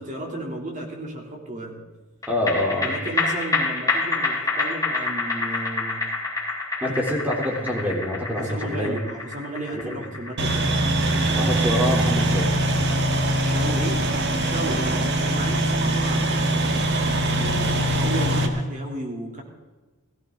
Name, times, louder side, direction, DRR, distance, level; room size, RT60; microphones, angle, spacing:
voice 1, 0.0-1.8 2.8-6.1 8.4-10.9 13.4-14.1 14.4-16.8 17.3-19.4, right 1 dB, 35° right, 1 dB, 3.0 m, -33 dB
sound 1, 2.2-14.9 15.2-15.3, left 3 dB, 15° left, 3.4 m, -28 dB
voice 2, 2.3-2.9 6.8-9.0 9.7-9.9 11.3-12.6, left 1 dB, 10° right, -1 dB, 3.2 m, -26 dB
sound 2, 10.4-18.5, right 1 dB, 55° right, 1.6 m, -22 dB
17.5 x 15.5 x 3.8 m, 1.2 s
head